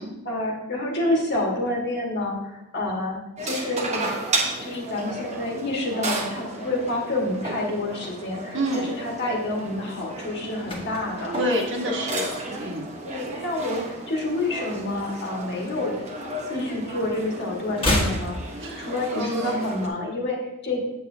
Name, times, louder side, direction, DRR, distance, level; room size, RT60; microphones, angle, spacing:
voice 1, 0.3-4.2 4.6-11.4 13.0-16.0 16.5-18.4 18.8-20.8, left 2 dB, 50° left, -2 dB, 1.7 m, -28 dB
sound 1, 3.4-19.9, right 2 dB, 30° right, 1.1 m, -33 dB
voice 2, 8.5-8.9 11.3-12.9 18.6-19.7, equal, 60° right, 0 dB, 1.4 m, -28 dB
sound 2, 10.6-13.0 13.2-13.5 13.8-15.3 15.6-16.9 17.2-19.3 19.5-19.6, left 1 dB, 25° left, 1.5 m, -31 dB
8.2 x 7.3 x 2.8 m, 0.92 s
head